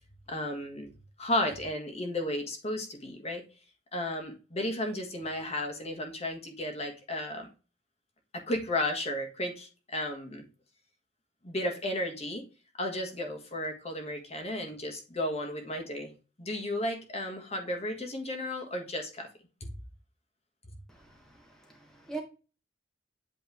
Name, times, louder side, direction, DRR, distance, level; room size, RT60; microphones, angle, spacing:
voice 1, 0.3-0.9 1.2-3.4 3.9-7.5 8.3-10.4 11.4-12.4 12.8-16.1 16.4-19.3 19.6-19.7, left 1 dB, 35° left, 1.5 m, -33 dB
voice 2, 20.9-22.2, right 4 dB, 5° left, 1.3 m, -43 dB
8.3 x 3.5 x 3.5 m
head